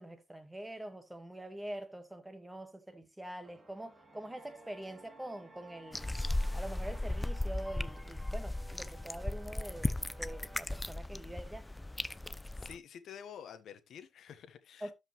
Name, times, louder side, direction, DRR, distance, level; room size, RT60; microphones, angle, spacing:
voice 1, 0.0-6.1 6.5-11.7 14.8-14.9, right 1 dB, 10° right, 1.8 m, -45 dB
sound 1, 3.4-10.6, right 2 dB, 30° right, 3.0 m, -56 dB
sound 2, 5.9-12.8, left 1 dB, 10° left, 0.5 m, -36 dB
voice 2, 12.6-14.9, left 8 dB, 65° left, 1.4 m, -49 dB
12.5 x 5.3 x 3.2 m
cardioid pair, 90°, 0 cm